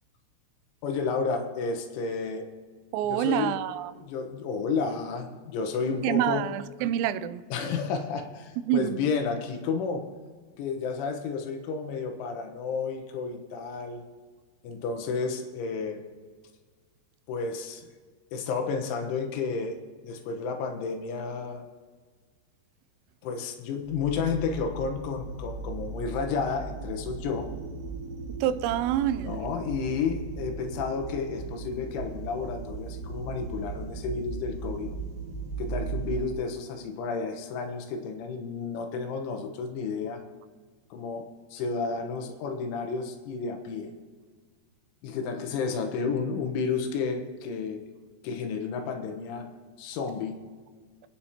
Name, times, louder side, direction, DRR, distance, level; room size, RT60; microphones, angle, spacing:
voice 1, 0.8-2.5 3.1-3.5 4.0-6.4 7.5-10.1 10.6-14.0 14.6-16.0 17.3-17.9 18.3-19.8 20.0-21.7 23.2-27.5 29.2-34.9 35.6-40.2 40.9-43.9 45.0-47.8 48.2-49.5 49.8-50.4, left 5 dB, 75° left, 3.4 m, -31 dB
voice 2, 2.9-4.1 6.0-7.5 8.7-9.0 28.4-29.4, right 11 dB, 90° right, 3.3 m, -27 dB
sound 1, 23.8-36.1, right 4 dB, 50° right, 2.3 m, -37 dB
27.5 x 9.5 x 2.9 m
omnidirectional pair, 5.8 m